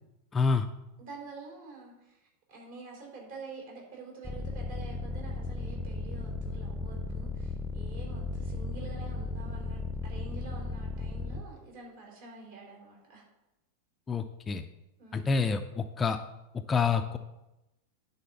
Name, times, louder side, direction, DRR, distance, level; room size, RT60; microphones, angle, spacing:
voice 1, 0.3-0.7 14.1-14.6 15.1-16.2 16.7-17.2, left 5 dB, 15° left, 7 dB, 0.5 m, -27 dB
voice 2, 1.0-13.2 15.0-15.4, right 3 dB, 50° right, -1 dB, 3.7 m, -47 dB
sound 1, 4.2-11.4, left 3 dB, ahead, 0.8 m, -36 dB
9.9 x 4.2 x 7.5 m, 0.94 s
figure-of-eight pair, 90°, 0 cm